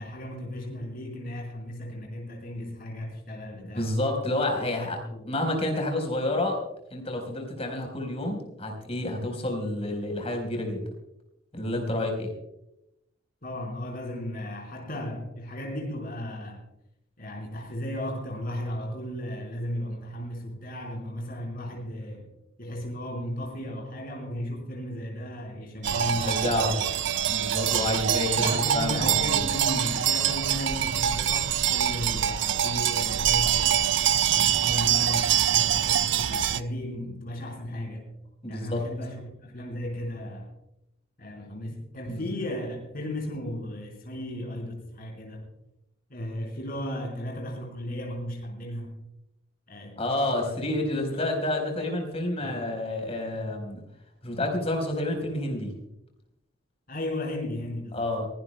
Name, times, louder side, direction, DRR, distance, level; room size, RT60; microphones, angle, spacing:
voice 1, 0.0-3.9 4.6-5.4 11.5-12.1 13.4-16.6 17.2-22.3 22.6-26.8 28.3-33.9 34.3-38.1 38.5-39.1 39.4-40.5 41.2-45.5 46.1-48.9 49.7-50.0 50.4-50.5 50.9-51.2 52.4-52.7 56.9-58.2, left 1 dB, 50° left, 0 dB, 4.5 m, -35 dB
voice 2, 3.7-5.0 5.3-6.6 6.9-10.9 11.5-12.3 26.3-26.8 27.3-29.5 38.4-38.8 42.1-42.2 50.0-53.8 54.2-55.7 57.9-58.3, left 1 dB, 35° left, 3 dB, 4.3 m, -29 dB
sound 1, 25.8-36.6, right 9 dB, 65° right, 0.5 m, -25 dB
23.0 x 17.5 x 2.2 m, 0.85 s
head